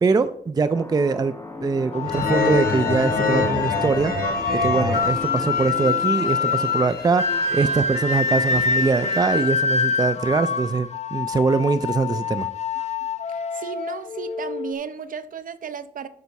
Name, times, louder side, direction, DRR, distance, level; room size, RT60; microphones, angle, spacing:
voice 1, 0.0-1.3 1.6-4.1 4.5-12.5, right 4 dB, 25° right, 13 dB, 0.3 m, -22 dB
sound 1, 0.6-6.7, left 2 dB, 20° left, 1.5 m, -37 dB
sound 2, 1.9-14.7, left 5 dB, 45° left, 0.9 m, -26 dB
sound 3, 2.0-9.4, left 2 dB, 75° left, 2.8 m, -28 dB
voice 2, 13.3-16.1, right 6 dB, 65° right, 12 dB, 0.7 m, -34 dB
11.5 x 5.5 x 4.1 m, 0.67 s
wide cardioid pair, 120°, 15 cm